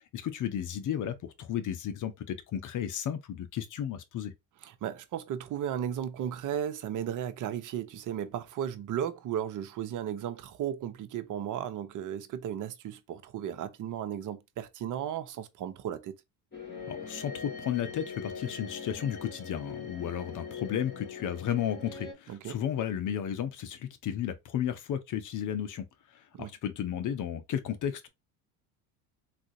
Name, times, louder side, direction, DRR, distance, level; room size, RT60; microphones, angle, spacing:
voice 1, 0.1-4.3 16.9-25.9 26.1-28.1, left 9 dB, 40° left, 0.7 m, -33 dB
voice 2, 4.6-16.1 22.3-22.6 26.3-26.5, right 10 dB, 40° right, 0.7 m, -35 dB
sound 1, 16.5-22.1, left 5 dB, 20° left, 2.0 m, -42 dB
3.7 x 2.4 x 2.6 m
supercardioid pair, 90°, 46 cm